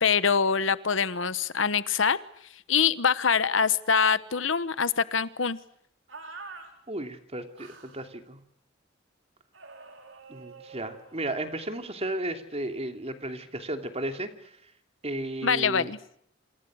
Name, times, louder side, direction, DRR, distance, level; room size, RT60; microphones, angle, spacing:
voice 1, 0.0-2.2 2.7-5.6 15.4-16.0, left 6 dB, 80° left, 15 dB, 1.1 m, -24 dB
sound 1, 6.1-6.7 7.5-8.0 9.5-11.9, right 4 dB, 80° right, 4.9 m, -47 dB
voice 2, 6.9-8.4 10.3-14.5 15.0-15.9, right 1 dB, 35° right, 6 dB, 2.9 m, -34 dB
28.0 x 27.5 x 6.4 m, 0.71 s
head